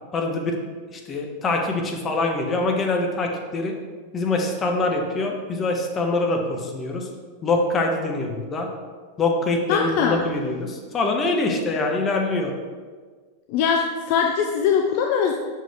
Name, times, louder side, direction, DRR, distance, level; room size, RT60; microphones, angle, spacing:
voice 1, 0.1-0.6 0.9-3.7 4.1-7.1 7.4-8.7 9.2-12.5, left 2 dB, 25° left, 2 dB, 0.8 m, -24 dB
voice 2, 9.7-10.2 13.5-15.3, left 7 dB, 45° left, 3 dB, 0.4 m, -21 dB
5.9 x 4.6 x 3.4 m, 1.5 s
figure-of-eight pair, 90°, 0 cm